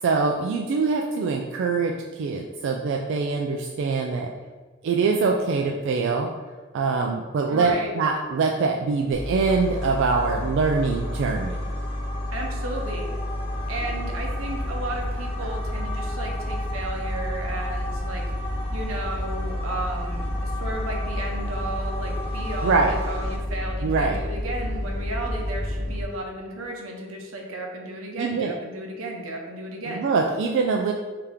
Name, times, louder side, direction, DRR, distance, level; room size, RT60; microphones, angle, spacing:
voice 1, 0.0-4.3 4.8-6.3 6.7-11.6 15.4-15.5 22.6-23.0 23.8-24.2 28.2-28.5 29.9-30.9, right 4 dB, 60° right, 1 dB, 0.3 m, -24 dB
voice 2, 7.5-7.9 12.3-13.1 13.7-18.2 18.7-30.0, right 1 dB, 85° right, 1 dB, 0.7 m, -34 dB
sound 1, 8.9-23.4, left 1 dB, 30° left, 0.5 m, -38 dB
sound 2, 9.1-26.0, left 1 dB, 5° right, 0.9 m, -30 dB
3.5 x 2.8 x 3.4 m, 1.4 s
head